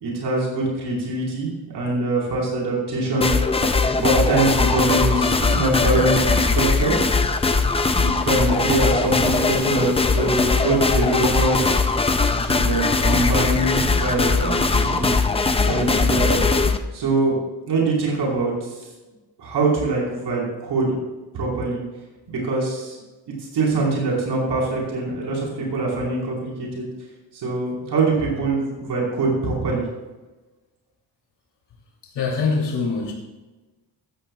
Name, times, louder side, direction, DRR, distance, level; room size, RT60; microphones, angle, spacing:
voice 1, 0.0-3.3 4.0-7.0 7.9-11.9 12.4-15.1 15.6-16.4 16.9-17.4 17.7-18.7 19.4-21.0 21.3-21.8 22.3-23.0 23.5-26.9 27.3-29.8, right 2 dB, 75° right, -3 dB, 4.6 m, -23 dB
sound 1, 3.2-16.8, left 3 dB, 15° left, 0.4 m, -20 dB
voice 2, 32.1-33.1, left 4 dB, 80° left, -1 dB, 3.1 m, -23 dB
14.5 x 14.5 x 2.4 m, 1.2 s
wide cardioid pair, 170°, 42 cm